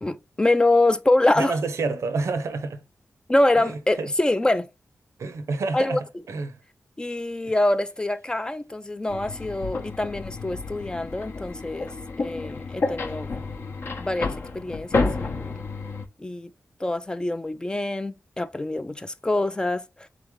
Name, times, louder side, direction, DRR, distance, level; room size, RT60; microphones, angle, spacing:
voice 1, 0.0-1.6 3.3-4.7 5.7-6.0 7.0-11.9 12.2-13.3 14.0-15.6 16.2-16.5 16.8-19.8, left 2 dB, 15° left, 0.3 m, -25 dB
voice 2, 1.4-2.8 3.6-4.1 5.2-6.6, right 3 dB, 80° right, 0.7 m, -29 dB
sound 1, 9.1-16.1, left 3 dB, 55° left, 0.7 m, -30 dB
3.9 x 3.3 x 3.5 m
wide cardioid pair, 115°, 5 cm